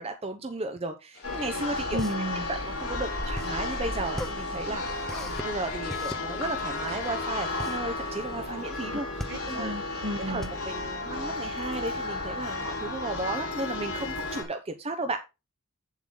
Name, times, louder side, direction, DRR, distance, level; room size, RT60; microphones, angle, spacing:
voice 1, 0.0-2.0 2.5-9.7 10.3-15.2, right 2 dB, 30° right, 0.8 m, -34 dB
sound 1, 1.1-8.6, left 5 dB, 50° left, 1.9 m, -46 dB
Church bell, 1.2-14.4, left 2 dB, 90° left, 3.1 m, -33 dB
voice 2, 1.9-2.5 9.3-10.5, equal, 55° right, 1.6 m, -33 dB
sound 2, 2.0-11.8, equal, ahead, 0.6 m, -40 dB
8.1 x 7.3 x 3.9 m
head